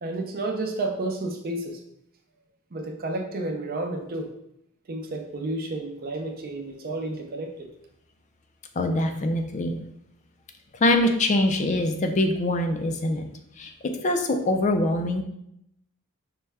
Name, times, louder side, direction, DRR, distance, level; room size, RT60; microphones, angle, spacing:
voice 1, 0.0-1.8 2.7-4.3 4.9-7.7, right 2 dB, 45° right, 3 dB, 0.5 m, -31 dB
voice 2, 8.8-9.8 10.7-13.3 13.6-13.7 14.0-15.2, left 1 dB, 35° left, 5 dB, 0.4 m, -23 dB
5.3 x 2.2 x 3.4 m, 0.76 s
head